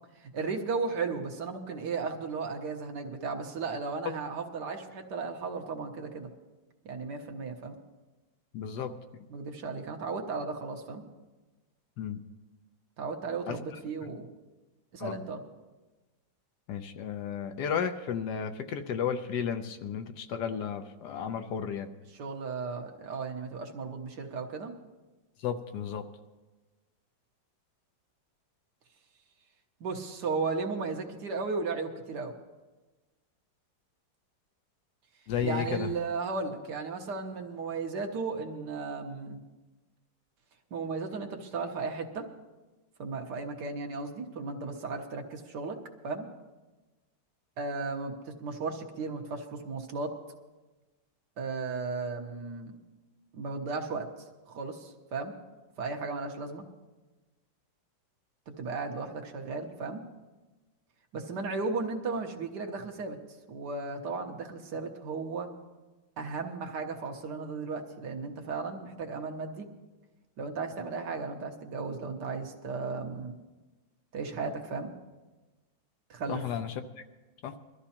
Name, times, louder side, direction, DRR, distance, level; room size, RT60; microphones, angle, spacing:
voice 1, 0.2-6.3 6.9-7.8 9.3-11.0 13.0-14.3 14.9-15.4 22.1-24.7 29.8-32.3 35.4-39.4 40.7-42.3 43.0-45.8 46.0-46.3 47.6-50.1 51.4-52.8 53.3-54.1 54.5-55.3 55.8-56.6 58.6-60.0 61.1-63.2 63.5-65.5 66.2-69.7 70.4-73.4 74.1-74.9 76.1-76.4, right 4 dB, 65° right, 3 dB, 1.6 m, -35 dB
voice 2, 8.5-8.9 12.0-12.2 13.5-13.6 15.0-15.2 16.7-21.9 25.4-26.0 35.3-35.9 76.3-76.8 77.4-77.5, left 8 dB, 70° left, 8 dB, 1.2 m, -33 dB
22.0 x 13.0 x 2.9 m, 1.2 s
omnidirectional pair, 2.0 m